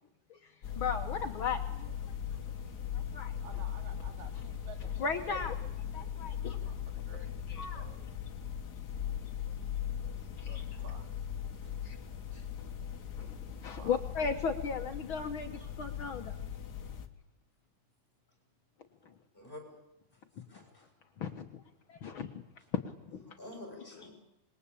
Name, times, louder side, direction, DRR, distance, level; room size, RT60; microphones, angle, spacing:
sound 1, 0.6-17.1, left 9 dB, 60° left, 1.0 m, -39 dB
voice 1, 0.8-2.1 2.9-3.3 5.0-5.6 5.9-6.6 7.5-7.9 10.4-10.6 11.8-12.0 13.2-13.4 13.6-16.4 21.2-21.5 21.9-22.4 23.1-23.2, left 5 dB, 85° left, 5 dB, 1.1 m, -36 dB
voice 2, 3.4-5.4 6.6-7.4 7.7-8.0 10.3-11.1 13.8-14.0, right 4 dB, 65° right, 5 dB, 4.0 m, -53 dB
voice 3, 19.3-19.7 20.5-20.9 23.3-24.1, left 1 dB, 10° left, 3 dB, 6.9 m, -48 dB
26.5 x 22.0 x 8.6 m, 0.90 s
omnidirectional pair, 4.3 m